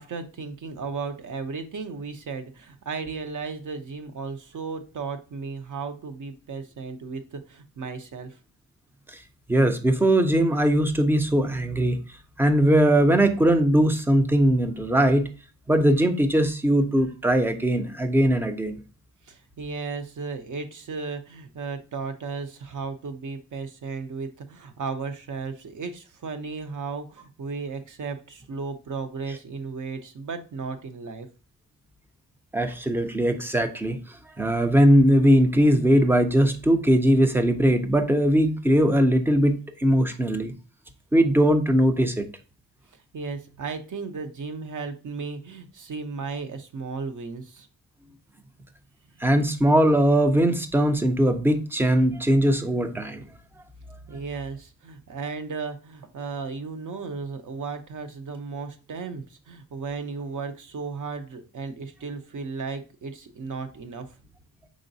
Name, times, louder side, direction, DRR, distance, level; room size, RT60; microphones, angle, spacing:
voice 1, 0.0-8.4 19.2-31.3 42.9-47.7 54.1-64.1, right 4 dB, 50° right, 8 dB, 0.6 m, -35 dB
voice 2, 9.5-12.0 12.4-15.2 15.7-18.8 32.5-34.0 34.4-40.5 41.1-42.3 49.2-53.2, right 1 dB, 5° right, 7 dB, 0.4 m, -20 dB
5.0 x 3.8 x 2.6 m, 0.35 s
wide cardioid pair, 165°, 40 cm